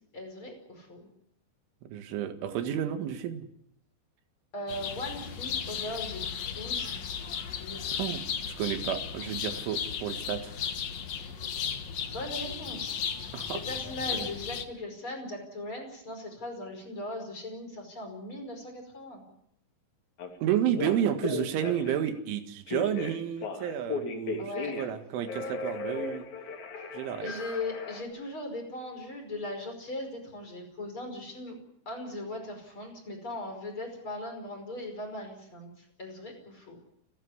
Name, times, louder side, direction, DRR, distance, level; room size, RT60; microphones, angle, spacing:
voice 1, 0.1-1.1 4.5-7.0 7.6-7.9 12.1-19.2 24.4-24.7 27.2-31.6 31.9-36.8, left 1 dB, 25° left, 3 dB, 5.8 m, -39 dB
voice 2, 1.8-3.5 8.0-8.2 8.6-10.6 13.3-13.6 14.1-14.3 20.4-26.3 26.9-27.3, right 10 dB, 85° right, 8 dB, 4.2 m, -31 dB
sound 1, 4.7-14.6, left 7 dB, 65° left, 1.7 m, -35 dB
Telephone, 20.2-20.3 20.7-22.1 22.7-25.0 25.2-28.0, left 3 dB, 45° left, 3.7 m, -36 dB
29.5 x 12.0 x 9.5 m, 0.75 s
omnidirectional pair, 5.4 m